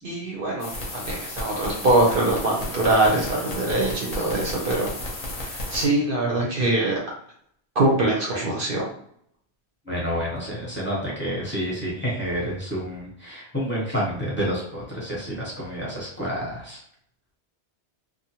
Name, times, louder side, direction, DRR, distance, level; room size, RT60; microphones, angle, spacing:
voice 1, 0.0-4.9 5.5-6.9 7.8-8.9, right 2 dB, 60° right, -2 dB, 0.7 m, -23 dB
sound 1, 0.6-5.9, left 1 dB, 40° left, 0.7 m, -33 dB
voice 2, 9.8-16.8, equal, 10° left, -6 dB, 0.8 m, -29 dB
2.6 x 2.1 x 2.8 m, 0.66 s
omnidirectional pair, 1.2 m